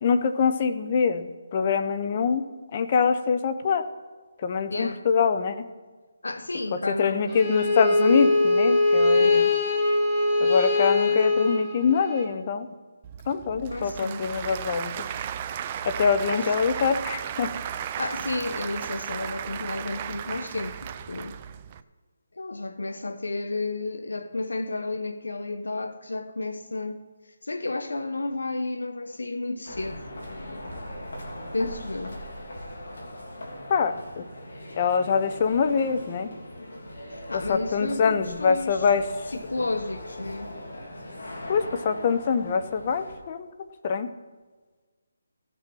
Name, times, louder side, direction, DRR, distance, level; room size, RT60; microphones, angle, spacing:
voice 1, 0.0-2.4 2.7-3.8 4.4-5.7 6.7-9.4 10.4-12.7 13.3-15.1 15.8-17.5 33.7-34.3 34.8-36.3 37.3-39.1 39.6-39.7 41.5-43.5 43.8-44.1, left 6 dB, 35° left, 0.8 m, -24 dB
voice 2, 4.7-5.0 6.2-7.5 9.2-9.6 13.7-14.3 16.3-16.5 18.0-21.4 22.4-27.0 27.4-30.1 31.5-32.2 37.1-38.8 39.3-40.5, left 2 dB, 85° left, 1.1 m, -32 dB
Bowed string instrument, 7.3-12.3, left 2 dB, 10° left, 1.7 m, -22 dB
Applause / Crowd, 13.0-21.8, right 9 dB, 25° right, 0.5 m, -35 dB
sound 1, 29.6-43.2, left 1 dB, 65° left, 2.9 m, -40 dB
15.5 x 6.7 x 6.2 m
figure-of-eight pair, 160°, 0 cm